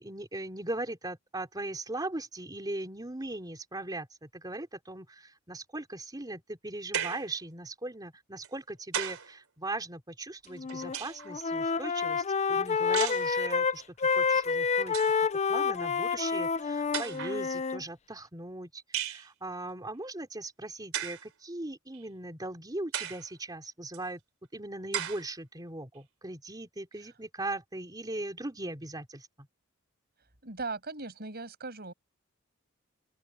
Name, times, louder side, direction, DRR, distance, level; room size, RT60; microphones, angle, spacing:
voice 1, 0.0-15.0 15.5-24.2 24.5-29.5, right 2 dB, 20° right, 3.6 m, -39 dB
sound 1, 6.9-7.3 8.4-9.3 10.4-11.3 12.9-13.3 14.4-14.5 14.8-15.2 16.2-16.3 16.9-17.4 18.9-19.3 20.9-21.3 21.9-22.0 22.9-23.3 23.9-24.0 24.9-25.3, right 9 dB, 90° right, 3.3 m, -35 dB
Wind instrument woodwind instrument, 10.5-11.0 11.3-17.8, left 5 dB, 35° left, 0.5 m, -28 dB
voice 2, 30.4-31.9, right 3 dB, 50° right, 6.5 m, -38 dB
open air
head